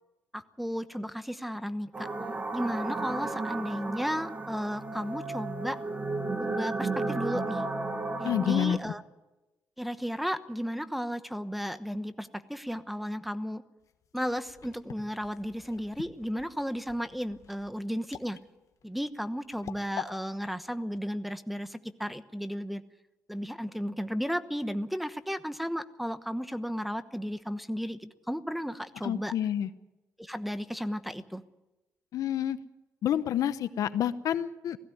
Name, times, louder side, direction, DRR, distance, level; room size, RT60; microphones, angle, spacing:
voice 1, 0.3-2.1 2.5-5.8 6.4-7.6 8.2-9.0 9.8-13.6 14.1-18.4 18.8-22.8 23.3-29.3 30.2-31.4, equal, ahead, 12 dB, 1.0 m, -34 dB
sound 1, 1.9-8.8, right 3 dB, 30° right, 2.0 m, -33 dB
voice 2, 8.2-8.8 29.0-29.7 32.1-32.6 33.0-34.8, left 10 dB, 80° left, 13 dB, 0.9 m, -28 dB
sound 2, 13.8-20.1, left 7 dB, 65° left, 1.4 m, -45 dB
18.0 x 15.5 x 9.4 m, 1.0 s
cardioid pair, 95°, 6 cm